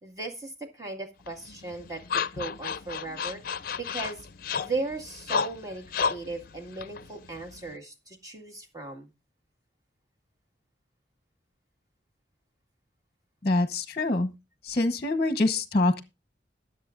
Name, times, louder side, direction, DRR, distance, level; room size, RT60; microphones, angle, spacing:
voice 1, 0.0-3.4 3.8-4.2 4.6-9.1, right 3 dB, 20° right, 2.1 m, -37 dB
sound 1, 1.3-7.8, left 6 dB, 50° left, 0.6 m, -33 dB
voice 2, 13.4-14.3 14.6-16.0, left 2 dB, 35° left, 1.0 m, -25 dB
21.5 x 7.7 x 2.5 m
head